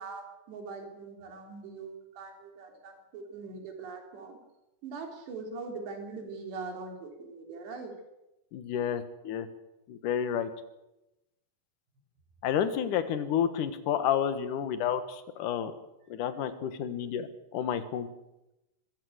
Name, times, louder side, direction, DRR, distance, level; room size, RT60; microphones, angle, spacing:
voice 1, 0.0-4.4 4.8-8.0, right 4 dB, 75° right, 3 dB, 5.6 m, -42 dB
voice 2, 8.5-9.5 9.9-10.5 12.4-15.7 16.1-17.3 17.5-18.1, left 9 dB, 60° left, 11 dB, 2.5 m, -30 dB
24.0 x 15.5 x 8.1 m, 0.94 s
omnidirectional pair, 4.9 m